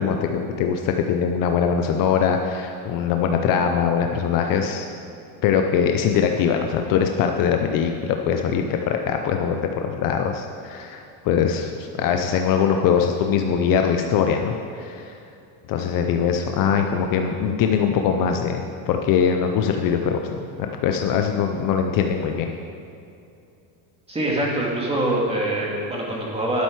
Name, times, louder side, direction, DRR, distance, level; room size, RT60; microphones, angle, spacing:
voice 1, 0.0-4.9 5.4-15.1 15.7-22.5, left 7 dB, 45° left, 4 dB, 0.7 m, -22 dB
voice 2, 24.1-26.6, right 1 dB, 15° right, -3 dB, 2.2 m, -24 dB
11.5 x 9.0 x 4.7 m, 2.6 s
cardioid pair, 145°, 46 cm